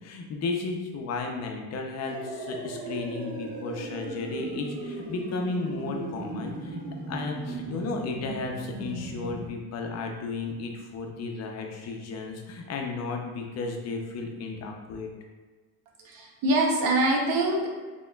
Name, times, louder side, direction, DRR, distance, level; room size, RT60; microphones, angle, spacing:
voice 1, 0.0-6.8 7.1-15.1, left 3 dB, 45° left, 2 dB, 0.6 m, -34 dB
sound 1, 2.1-9.5, right 2 dB, 25° right, 0.4 m, -37 dB
voice 2, 16.0-17.7, right 1 dB, 65° right, 0 dB, 0.8 m, -24 dB
4.3 x 2.9 x 2.3 m, 1.4 s
cardioid pair, 135°, 38 cm